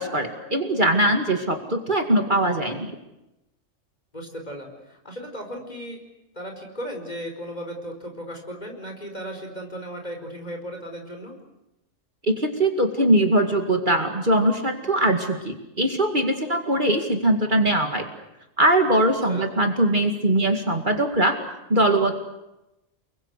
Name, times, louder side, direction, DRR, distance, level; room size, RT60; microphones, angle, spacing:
voice 1, 0.0-2.9 12.3-18.1 18.6-21.4 21.7-22.1, right 1 dB, 40° right, 5 dB, 2.4 m, -21 dB
voice 2, 4.1-6.0 6.3-11.3 19.3-19.5, equal, 35° left, 3 dB, 5.2 m, -36 dB
29.5 x 22.0 x 8.3 m, 0.92 s
omnidirectional pair, 1.3 m